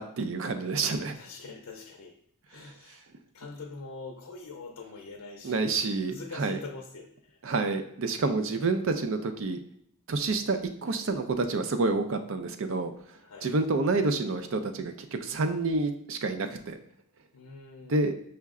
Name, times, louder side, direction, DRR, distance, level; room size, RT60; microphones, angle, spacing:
voice 1, 0.0-1.2 5.4-6.6 7.4-9.6 10.1-12.9 13.4-16.8 17.9-18.1, right 3 dB, 60° right, 8 dB, 0.4 m, -28 dB
voice 2, 1.2-2.1 2.5-3.0 3.3-7.4 8.5-8.8 13.2-13.5 17.3-18.2, left 3 dB, 85° left, 1 dB, 0.5 m, -44 dB
5.6 x 2.1 x 3.5 m, 0.70 s
head